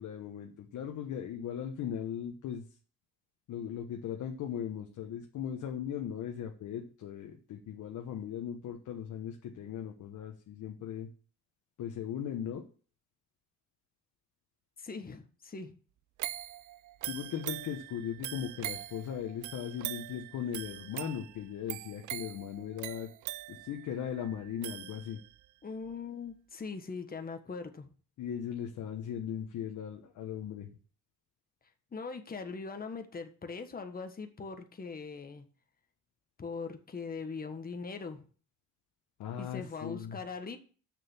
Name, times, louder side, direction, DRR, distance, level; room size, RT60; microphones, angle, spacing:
voice 1, 0.0-2.6 3.5-11.1 11.8-12.6 17.0-23.1 23.5-25.2 28.2-30.7 39.2-40.2, left 9 dB, 75° left, 2 dB, 1.3 m, -38 dB
voice 2, 14.8-15.7 25.6-27.9 31.9-35.5 36.4-38.2 39.4-40.6, left 4 dB, 30° left, 6 dB, 1.5 m, -41 dB
sound 1, 16.2-25.5 25.9-26.0, right 15 dB, 75° right, 0.5 m, -42 dB
6.8 x 6.7 x 7.1 m, 0.40 s
cardioid pair, 90°, 30 cm